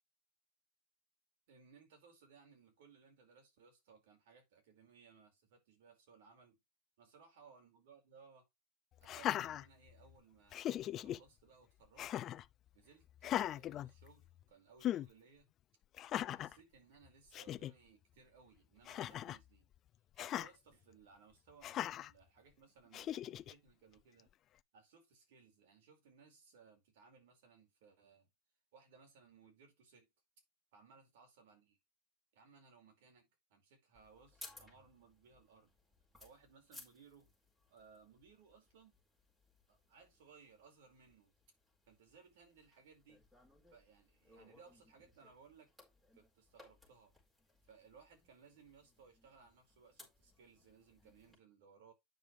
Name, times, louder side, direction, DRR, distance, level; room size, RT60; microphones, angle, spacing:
voice 1, 1.5-6.6 7.0-8.5 9.0-12.1 12.7-15.5 16.3-19.7 20.1-24.3 24.7-28.3 28.7-30.1 30.7-31.8 32.3-35.7 36.2-37.3 37.7-39.0 39.7-41.3 41.9-43.3 43.7-45.7 46.1-47.1 47.6-51.9, right 5 dB, 85° right, 5.0 m, -64 dB
Laughter, 9.0-10.1 10.5-11.2 12.0-12.5 13.2-14.4 14.8-15.1 16.0-16.6 17.1-17.2 17.3-17.7 18.8-19.4 20.2-20.5 21.6-22.1 22.9-23.5, left 12 dB, 35° left, 0.4 m, -39 dB
sound 1, 33.9-51.3, left 2 dB, 5° right, 4.6 m, -63 dB
9.0 x 6.7 x 3.4 m
supercardioid pair, 145°, 0 cm